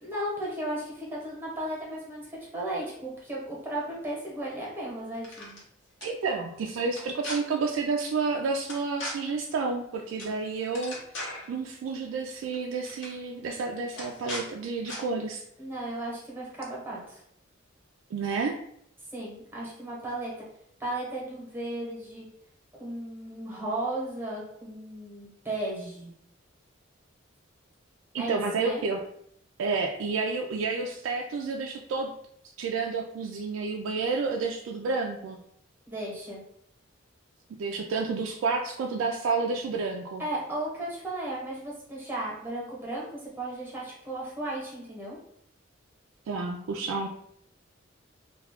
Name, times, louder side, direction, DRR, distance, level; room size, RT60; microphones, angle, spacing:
voice 1, 0.0-5.6 15.6-17.2 19.1-20.3 20.8-22.3 22.8-26.1 28.2-28.8 35.9-36.4 40.2-45.2, right 1 dB, 10° right, -4 dB, 1.0 m, -35 dB
sound 1, 5.1-5.6 6.0-6.1 6.9-7.4 8.7-9.1 10.2-10.4 10.6-11.5 12.4-12.6 12.8-13.1 13.9-14.4 14.8-15.0, left 1 dB, 65° left, 0.9 m, -37 dB
voice 2, 6.0-11.0 11.5-15.4 18.1-18.6 28.1-29.0 29.6-32.1 32.6-35.4 37.6-40.2 46.3-47.1, right 4 dB, 80° right, 1 dB, 0.3 m, -30 dB
2.3 x 2.3 x 3.4 m, 0.70 s
head